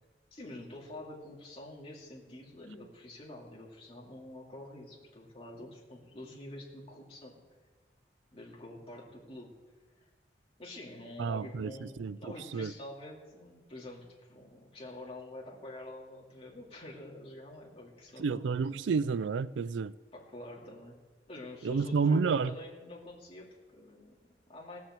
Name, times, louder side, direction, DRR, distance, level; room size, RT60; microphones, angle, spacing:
voice 1, 0.3-7.4 8.3-9.5 10.0-10.1 10.6-18.6 20.1-21.0 21.3-24.8, left 1 dB, 30° left, 2.6 m, -47 dB
voice 2, 11.2-12.2 12.5-12.7 18.2-19.9 21.6-22.5, right 5 dB, 85° right, 0.4 m, -30 dB
17.5 x 5.9 x 7.4 m
head